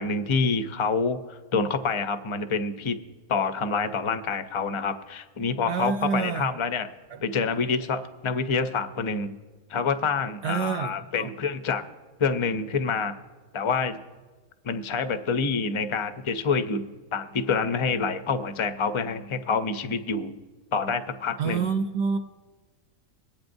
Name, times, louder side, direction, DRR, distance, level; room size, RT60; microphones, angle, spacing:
voice 1, 0.0-3.0 3.3-6.9 7.2-9.3 9.7-11.8 12.2-13.1 13.5-14.0 14.6-20.4 20.7-21.7, left 5 dB, 40° left, 9 dB, 0.4 m, -27 dB
voice 2, 5.7-6.5 10.4-11.3 21.4-22.2, right 6 dB, 65° right, 6 dB, 0.8 m, -27 dB
23.0 x 8.8 x 2.6 m, 1.3 s
omnidirectional pair, 1.4 m